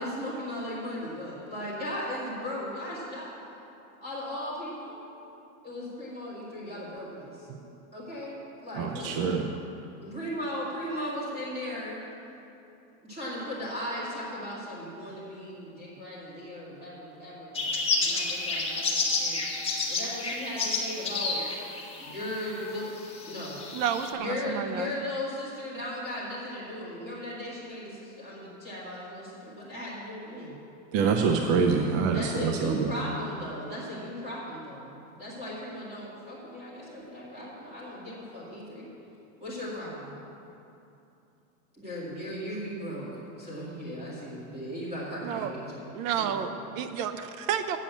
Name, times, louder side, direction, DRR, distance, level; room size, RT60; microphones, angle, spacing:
voice 1, 0.0-3.3 4.0-5.0 5.6-7.5 7.9-9.3 10.0-12.0 13.0-19.4 19.9-21.5 22.0-22.9 23.3-23.6 24.2-30.5 32.1-38.9 39.4-40.2 41.8-45.9 46.2-46.5, left 1 dB, 15° right, -8 dB, 2.3 m, -37 dB
voice 2, 8.8-9.4 30.9-33.0, right 5 dB, 35° right, 4 dB, 0.6 m, -25 dB
sound 1, 17.5-22.4 22.8-24.1, left 3 dB, 15° left, 1.4 m, -30 dB
voice 3, 23.7-24.9 45.2-45.5 45.9-47.8, right 8 dB, 65° right, 9 dB, 0.9 m, -31 dB
8.3 x 7.3 x 8.4 m, 2.8 s
supercardioid pair, 145°, 42 cm